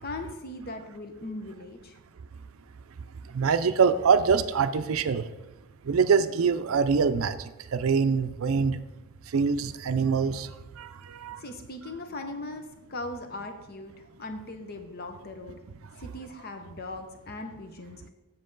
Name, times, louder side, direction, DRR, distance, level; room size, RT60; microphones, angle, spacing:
voice 1, 0.0-2.0 11.4-15.6 16.0-18.1, left 2 dB, 45° left, 6 dB, 0.7 m, -39 dB
voice 2, 3.3-5.3 5.8-8.8 9.3-11.4, right 5 dB, 70° right, 11 dB, 0.4 m, -24 dB
7.5 x 7.3 x 3.8 m, 1.1 s
head